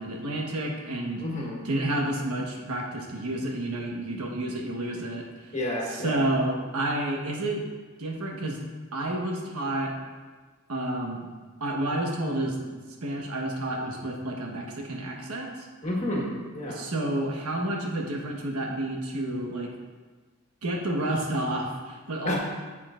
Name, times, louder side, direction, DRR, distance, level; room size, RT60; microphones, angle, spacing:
voice 1, 0.0-1.2 1.6-5.6 5.9-7.6 8.0-8.6 8.9-9.9 10.7-11.3 11.6-15.7 16.7-19.7 20.6-22.4, right 1 dB, 90° right, 0 dB, 1.3 m, -30 dB
voice 2, 1.2-1.6 5.5-6.2 15.8-16.8 22.2-22.4, left 1 dB, 35° left, -2 dB, 1.5 m, -30 dB
9.6 x 7.3 x 2.5 m, 1.4 s
head